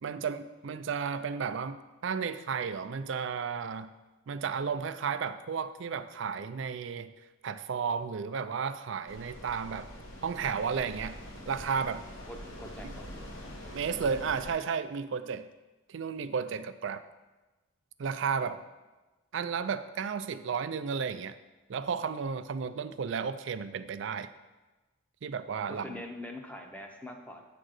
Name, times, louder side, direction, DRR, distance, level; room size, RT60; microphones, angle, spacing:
voice 1, 0.0-3.9 4.3-7.1 7.4-9.9 10.2-11.2 11.5-12.1 12.8-12.9 13.7-15.5 15.9-17.0 18.0-18.6 19.3-21.4 21.7-24.3 25.2-26.0, right 6 dB, 60° right, 12 dB, 0.4 m, -33 dB
sound 1, 9.1-14.5, equal, 65° left, 1.3 m, -44 dB
voice 2, 12.3-13.2 18.4-18.6 25.7-27.4, left 1 dB, 5° left, 3 dB, 0.6 m, -44 dB
8.7 x 3.8 x 6.4 m, 1.2 s
head